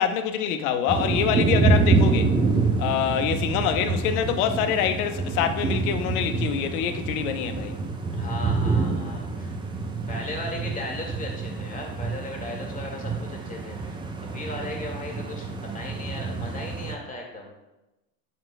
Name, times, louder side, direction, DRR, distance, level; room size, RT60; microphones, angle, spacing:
voice 1, 0.0-2.3 2.8-7.8, left 8 dB, 60° left, 0.9 m, -25 dB
sound 1, 0.9-17.0, right 3 dB, 10° right, 0.7 m, -27 dB
voice 2, 8.1-9.5 10.1-15.5 15.7-17.5, left 2 dB, 15° left, 2.0 m, -37 dB
9.4 x 7.7 x 2.2 m
hypercardioid pair, 110°, 49 cm